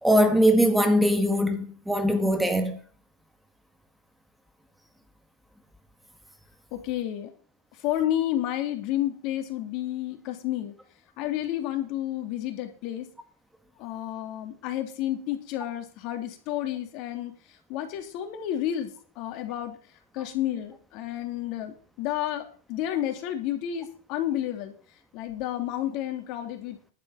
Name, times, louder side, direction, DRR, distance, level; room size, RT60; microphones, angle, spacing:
voice 1, 0.0-2.8, equal, 5° right, 1.5 m, -21 dB
voice 2, 6.7-7.3 7.7-10.7 11.2-13.1 13.8-19.8 20.1-24.7 25.1-26.8, left 12 dB, 50° left, 3.0 m, -31 dB
11.0 x 8.3 x 5.8 m
supercardioid pair, 125°, 0 cm